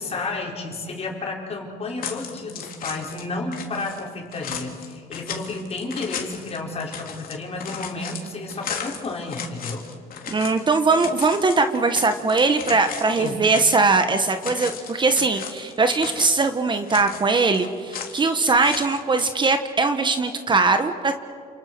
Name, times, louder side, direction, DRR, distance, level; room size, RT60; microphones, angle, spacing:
voice 1, 0.0-9.9 13.2-13.5, left 3 dB, 35° left, 0 dB, 5.2 m, -31 dB
sound 1, 2.0-3.3 3.5-14.0 14.3-16.5 16.7-18.2 18.5-19.3, left 7 dB, 60° left, 3.5 m, -36 dB
voice 2, 10.3-21.1, right 3 dB, 30° right, 7 dB, 1.6 m, -20 dB
29.5 x 28.5 x 6.4 m, 2.2 s
cardioid pair, 110°, 17 cm